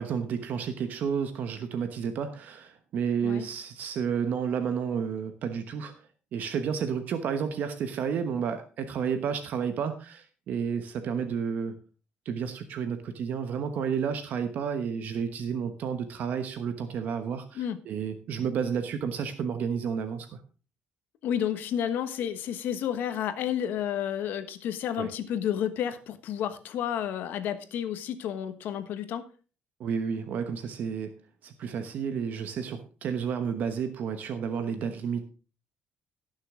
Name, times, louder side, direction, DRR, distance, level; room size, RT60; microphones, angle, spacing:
voice 1, 0.0-5.9 6.3-11.7 12.2-20.4 25.0-25.1 29.8-31.1 31.4-35.2, right 7 dB, 60° right, 8 dB, 1.1 m, -31 dB
voice 2, 21.2-29.3, left 9 dB, 70° left, 10 dB, 1.2 m, -31 dB
18.0 x 6.5 x 3.7 m, 0.36 s
cardioid pair, 145°, 3 cm